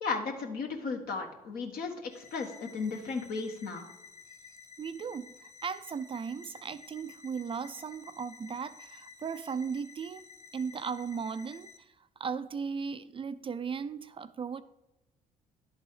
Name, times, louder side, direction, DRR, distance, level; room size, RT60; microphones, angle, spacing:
voice 1, 0.0-3.9, left 4 dB, 65° left, 1.5 m, -35 dB
sound 1, 2.1-11.8, left 5 dB, 40° left, 2.4 m, -53 dB
voice 2, 4.8-10.3 10.5-14.6, right 6 dB, 30° right, 0.4 m, -37 dB
11.0 x 4.0 x 4.9 m
hypercardioid pair, 60°, 17 cm